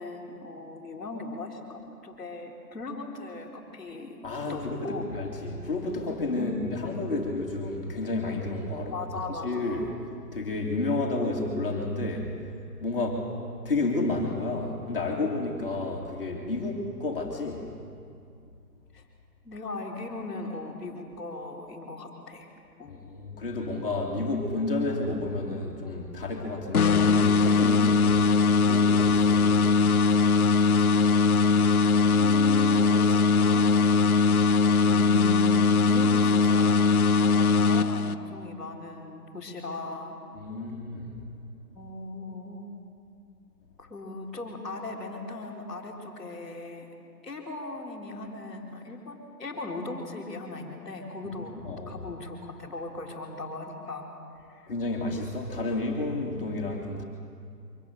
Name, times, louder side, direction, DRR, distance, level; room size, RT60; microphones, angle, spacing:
voice 1, 0.0-4.1 4.5-5.0 6.4-6.5 8.9-9.9 18.9-19.0 19.4-22.5 22.8-23.0 32.1-33.7 34.2-34.3 34.9-36.8 37.2-40.2 41.7-42.7 43.8-46.9 47.2-54.1 54.5-54.7, left 3 dB, ahead, -17 dB, 2.2 m, -38 dB
voice 2, 4.2-9.0 9.3-9.9 10.3-12.5 12.8-17.7 22.9-28.2 28.7-29.9 40.3-41.2 51.2-52.0 54.7-57.0, left 2 dB, 35° left, -1 dB, 2.0 m, -31 dB
sound 1, 26.7-38.5, left 4 dB, 60° left, 0.8 m, -21 dB
23.5 x 15.5 x 9.3 m, 2.4 s
hypercardioid pair, 175°, 49 cm